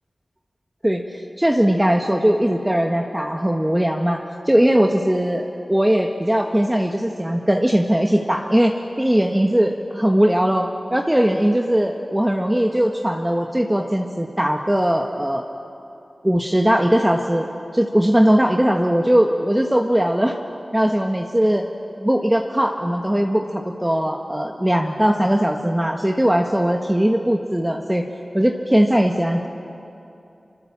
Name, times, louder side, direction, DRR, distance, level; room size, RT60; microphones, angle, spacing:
voice 1, 0.8-15.4 16.2-20.4 20.7-21.6 22.0-28.0 28.3-29.5, equal, 10° right, 2 dB, 1.4 m, -19 dB
26.0 x 25.0 x 7.4 m, 2.7 s
wide cardioid pair, 60°, 0 cm